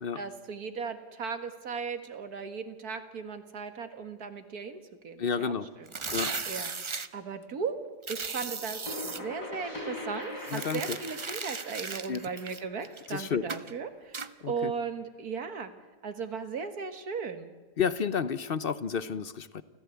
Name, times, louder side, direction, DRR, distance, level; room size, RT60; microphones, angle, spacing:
voice 1, 0.2-5.5 5.8-5.9 6.5-7.8 8.1-15.7 16.0-17.5, right 5 dB, 65° right, 8 dB, 2.2 m, -37 dB
voice 2, 5.2-5.7 6.1-6.3 10.5-11.0 12.1-12.2 13.1-13.4 14.4-14.7 17.8-19.6, left 7 dB, 50° left, 15 dB, 0.8 m, -31 dB
sound 1, 5.9-7.1 8.0-9.2 10.4-13.1 13.5-13.7 14.1-14.3, right 4 dB, 40° right, 0.4 m, -36 dB
sound 2, 8.4-14.0, left 1 dB, 85° left, 5.4 m, -42 dB
29.0 x 15.0 x 8.4 m, 1.4 s
omnidirectional pair, 1.7 m